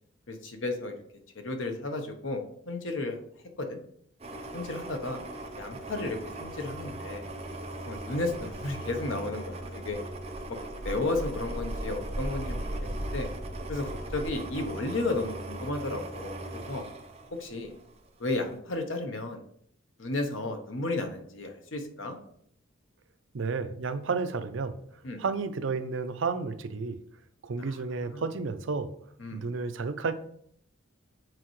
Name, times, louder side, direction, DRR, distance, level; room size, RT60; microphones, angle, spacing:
voice 1, 0.3-0.9 1.4-3.2 3.6-3.8 4.5-5.2 5.6-7.3 7.9-10.0 10.5-10.6 10.8-13.3 13.7-16.8 17.4-17.7 18.2-19.4 20.0-22.2 25.0-25.2 27.6-27.7 28.1-28.2 29.2-29.4, left 2 dB, 75° left, 5 dB, 0.9 m, -33 dB
sound 1, 4.2-17.9 18.3-18.5, right 1 dB, 30° right, 0.7 m, -38 dB
voice 2, 23.3-24.8 25.2-27.0 27.4-28.9 29.3-30.1, right 4 dB, 70° right, 10 dB, 0.5 m, -31 dB
7.8 x 4.5 x 3.1 m, 0.68 s
head